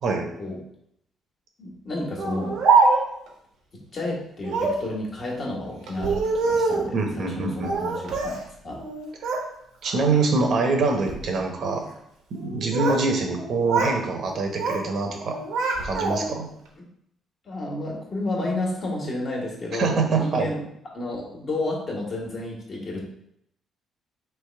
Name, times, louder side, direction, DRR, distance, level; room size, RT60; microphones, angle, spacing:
voice 1, 1.6-2.6 3.9-8.3 8.6-8.8 16.8-16.9 17.4-20.6 20.9-23.1, left 2 dB, 45° left, -2 dB, 1.4 m, -31 dB
Speech, 2.2-3.3 4.4-4.9 5.9-6.9 7.6-8.4 8.7-9.5 9.8-10.2 10.9-11.2 12.3-13.1 13.3-14.0 14.3-14.9 15.2-16.4, right 4 dB, 80° right, 1.0 m, -24 dB
voice 2, 6.9-7.7 9.8-11.8 12.3-15.4 15.8-16.5 19.8-20.5, right 3 dB, 60° right, 3 dB, 0.9 m, -24 dB
3.4 x 3.0 x 4.5 m, 0.74 s
cardioid pair, 95°, 0 cm